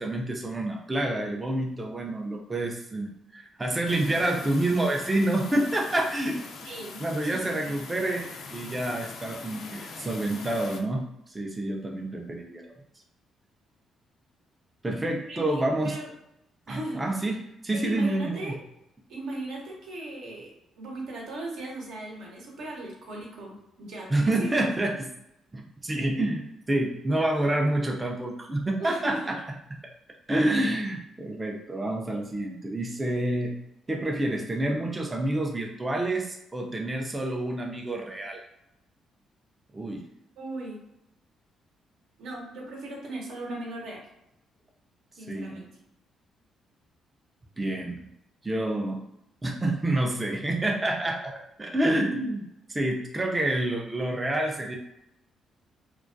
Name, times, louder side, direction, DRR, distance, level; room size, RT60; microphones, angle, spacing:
voice 1, 0.0-6.4 7.0-12.7 14.8-16.0 16.7-18.5 24.1-25.1 25.5-29.4 30.3-33.6 33.9-38.4 39.7-40.0 45.3-45.6 47.6-48.1 48.4-49.0 49.4-54.8, right 1 dB, 20° right, 0 dB, 0.4 m, -28 dB
sound 1, 3.9-10.8, left 4 dB, 70° left, 0.3 m, -42 dB
voice 2, 6.6-7.8 15.3-16.1 16.7-17.0 17.7-18.6 19.1-20.5 20.8-24.7 28.8-29.3 40.4-40.8 42.2-44.1 45.2-45.7, right 2 dB, 80° right, -2 dB, 0.8 m, -38 dB
2.2 x 2.2 x 2.5 m, 0.83 s
cardioid pair, 90°, 0 cm